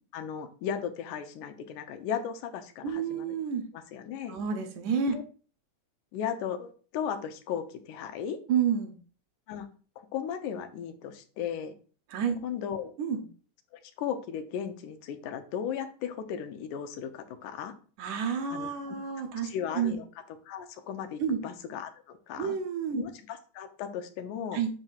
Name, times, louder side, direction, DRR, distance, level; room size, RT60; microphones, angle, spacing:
voice 1, 0.1-3.3 3.7-4.4 5.1-5.2 6.1-8.4 9.5-9.7 10.0-11.8 12.4-12.9 13.7-17.7 18.5-19.0 19.4-20.0 20.5-22.6 23.0-24.6, left 8 dB, 80° left, 8 dB, 2.2 m, -36 dB
voice 2, 2.8-3.7 4.3-5.2 8.5-9.0 12.1-12.4 13.0-13.2 18.0-19.5 19.8-20.0 21.2-21.4 22.4-23.0 24.5-24.7, right 7 dB, 80° right, 5 dB, 2.4 m, -29 dB
7.8 x 2.7 x 5.7 m, 0.39 s
omnidirectional pair, 3.5 m